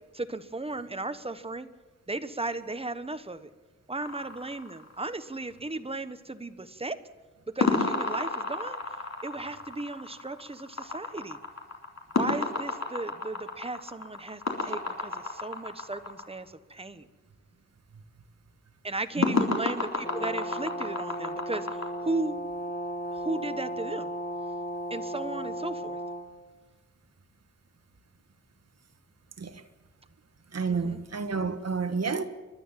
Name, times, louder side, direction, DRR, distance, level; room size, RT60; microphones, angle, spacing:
voice 1, 0.1-1.7 2.1-3.5 3.9-7.0 7.5-8.8 9.2-11.4 12.1-17.1 18.8-21.7 22.0-22.4 23.1-24.1 24.9-26.0 30.7-31.0, right 2 dB, 20° right, 1.2 m, -35 dB
sound 1, 4.0-5.4 7.6-16.2 19.2-21.9, left 3 dB, 65° left, 3.9 m, -31 dB
voice 2, 19.2-19.6 29.4-29.6 30.5-32.2, right 5 dB, 60° right, 1.6 m, -30 dB
Brass instrument, 20.0-26.3, right 1 dB, 30° left, 2.9 m, -35 dB
29.5 x 12.0 x 7.5 m
wide cardioid pair, 100°, 29 cm